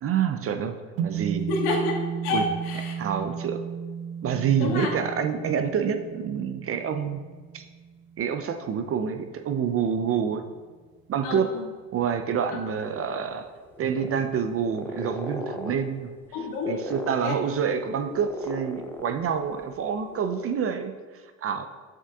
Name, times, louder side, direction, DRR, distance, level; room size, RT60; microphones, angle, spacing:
voice 1, 0.0-0.8 1.0-1.5 2.3-2.5 3.0-3.6 4.2-7.2 7.5-7.6 8.2-10.4 11.1-11.5 11.9-13.5 13.8-16.1 16.7-20.9 21.4-21.6, right 7 dB, 35° right, 7 dB, 0.5 m, -27 dB
sound 1, 1.0-9.4, right 7 dB, 60° right, 0.9 m, -35 dB
voice 2, 1.5-2.9 4.6-4.9 11.2-11.6 16.3-16.8 17.2-17.4, left 3 dB, 65° left, 0 dB, 1.7 m, -28 dB
sound 2, 12.7-19.7 20.0-20.5, equal, 5° left, 0.6 m, -38 dB
7.3 x 6.5 x 2.3 m, 1.4 s
hypercardioid pair, 85°, 41 cm